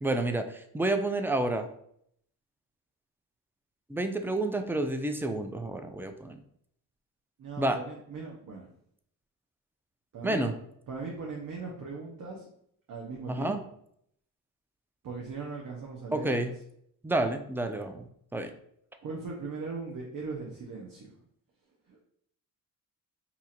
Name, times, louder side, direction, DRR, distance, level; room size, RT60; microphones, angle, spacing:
voice 1, 0.0-1.7 3.9-6.4 7.6-7.8 10.2-10.5 13.3-13.6 16.1-16.5 17.0-18.5, right 2 dB, 5° right, 7 dB, 0.3 m, -29 dB
voice 2, 7.4-8.7 10.1-10.6 10.9-12.4 12.9-13.7 15.0-16.5 19.0-21.1 21.9-22.0, right 4 dB, 55° right, -2 dB, 0.9 m, -39 dB
2.8 x 2.5 x 4.2 m, 0.69 s
cardioid pair, 75°, 38 cm